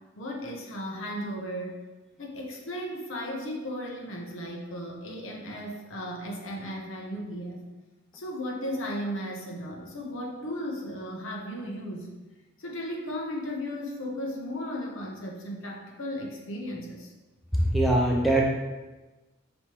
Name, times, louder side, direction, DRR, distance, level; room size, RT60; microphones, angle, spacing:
voice 1, 0.1-1.7 2.2-7.6 8.1-12.1 12.6-17.1, equal, 70° left, -1 dB, 0.8 m, -35 dB
voice 2, 17.6-18.4, right 1 dB, ahead, -3 dB, 0.4 m, -22 dB
5.2 x 3.0 x 3.0 m, 1.2 s
head